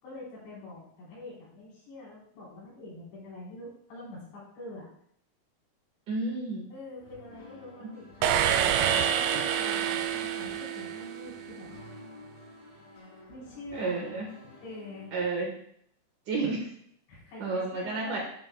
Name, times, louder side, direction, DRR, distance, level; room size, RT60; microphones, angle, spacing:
voice 1, 0.0-4.9 6.7-11.7 13.3-14.2 14.6-15.1 17.1-18.2, left 2 dB, 85° left, -6 dB, 6.5 m, -45 dB
voice 2, 6.1-6.7 13.7-14.3 15.1-15.5 16.3-16.7 17.4-18.2, right 3 dB, 60° right, -1 dB, 2.4 m, -31 dB
sound 1, 7.0-15.3, left 2 dB, 40° left, 4.0 m, -50 dB
sound 2, 8.2-11.4, right 9 dB, 80° right, 2.6 m, -27 dB
12.5 x 7.7 x 2.3 m, 0.69 s
omnidirectional pair, 4.9 m